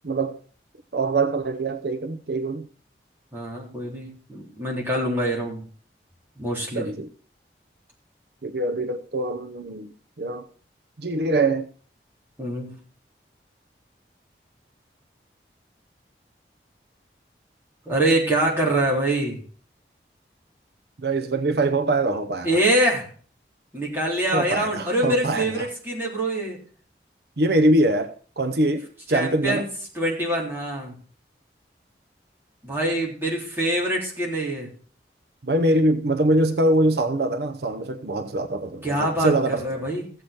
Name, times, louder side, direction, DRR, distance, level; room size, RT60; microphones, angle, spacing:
voice 1, 0.0-0.4 0.9-2.7 6.7-7.1 8.4-9.9 10.2-10.5 11.0-11.7 21.0-22.6 24.3-25.7 27.4-29.7 35.4-39.9, right 2 dB, 70° right, 0.8 m, -23 dB
voice 2, 3.3-5.7 6.4-6.8 12.4-12.7 17.9-19.4 22.4-23.1 23.7-26.6 29.1-29.6 30.0-30.9 32.6-34.7 38.8-39.3 39.6-40.0, right 1 dB, 15° right, 3.6 m, -24 dB
15.5 x 8.0 x 4.3 m
head